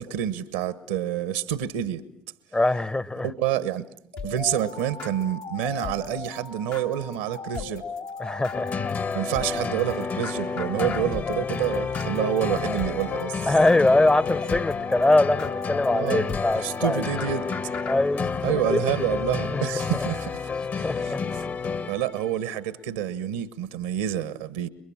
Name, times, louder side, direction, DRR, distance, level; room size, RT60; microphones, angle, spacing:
voice 1, 0.0-2.0 3.2-3.9 4.2-7.9 9.1-13.4 15.9-16.3 16.5-17.5 18.4-20.4 20.7-21.1 21.9-24.7, right 10 dB, 80° right, 1.2 m, -28 dB
voice 2, 2.5-3.3 8.2-9.0 13.5-17.0 17.9-18.8 19.5-19.6 20.8-21.2, left 2 dB, 20° left, 1.1 m, -23 dB
sound 1, 4.1-18.0, left 5 dB, 65° left, 2.2 m, -37 dB
sound 2, 8.5-22.3, left 5 dB, 50° left, 1.9 m, -30 dB
29.5 x 22.5 x 7.4 m
hypercardioid pair, 50°, 5 cm